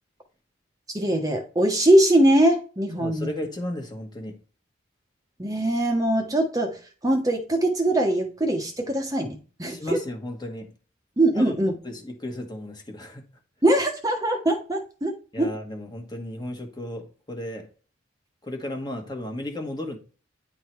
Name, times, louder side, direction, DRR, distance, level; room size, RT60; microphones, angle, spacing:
voice 1, 0.9-3.3 5.4-6.8 7.0-10.0 11.2-11.7 13.6-15.5, right 1 dB, 20° right, 1.0 m, -22 dB
voice 2, 2.9-4.4 9.7-10.7 11.4-13.2 15.3-17.7 18.4-20.0, left 1 dB, 20° left, 1.4 m, -34 dB
9.7 x 3.7 x 4.5 m
head